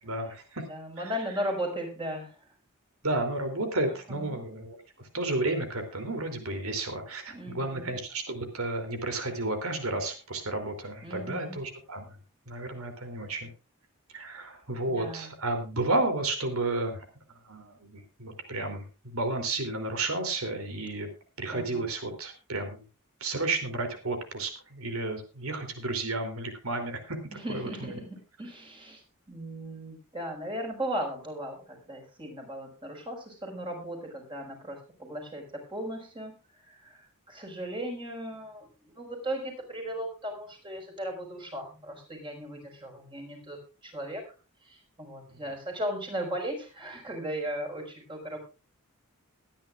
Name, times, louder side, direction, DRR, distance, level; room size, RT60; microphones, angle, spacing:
voice 1, 0.0-0.6 1.0-1.1 3.0-4.8 5.1-12.1 12.5-13.5 14.1-17.1 17.5-21.1 21.4-22.8 23.2-27.2 27.5-27.7 45.3-45.4, right 2 dB, 80° right, 6 dB, 3.0 m, -32 dB
voice 2, 0.6-2.4 3.9-4.4 7.3-7.9 11.0-11.6 14.3-15.3 21.5-21.9 27.3-44.3 44.6-48.4, right 1 dB, 25° right, 2 dB, 5.2 m, -37 dB
22.0 x 10.5 x 2.4 m, 0.32 s
head